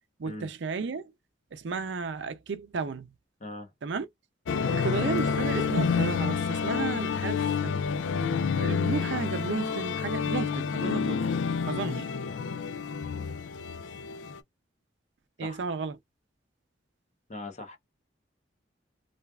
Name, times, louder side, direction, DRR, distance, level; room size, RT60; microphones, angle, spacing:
voice 1, 0.2-1.1 1.5-3.1 3.8-4.1 4.7-7.8 8.1-11.4 11.7-12.1 15.4-16.0, right 4 dB, 75° right, 0.5 m, -33 dB
voice 2, 3.4-3.7 15.4-15.6 17.3-17.8, left 2 dB, 40° left, 0.9 m, -41 dB
sound 1, 4.5-14.4, left 6 dB, 80° left, 0.4 m, -29 dB
3.2 x 2.4 x 2.3 m
head